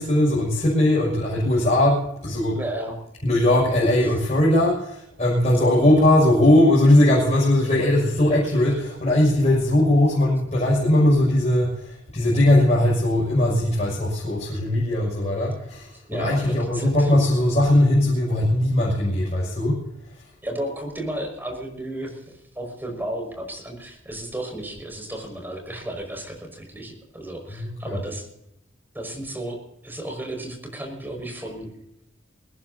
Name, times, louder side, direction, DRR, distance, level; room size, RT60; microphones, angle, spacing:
voice 1, 0.0-2.6 3.2-19.8 20.1-20.2 27.5-28.0, left 1 dB, 35° left, -6 dB, 6.4 m, -19 dB
voice 2, 2.5-3.0 16.1-17.1 20.4-28.3 28.9-31.7, right 1 dB, 10° right, 2 dB, 5.4 m, -33 dB
22.5 x 19.5 x 2.8 m, 0.79 s
head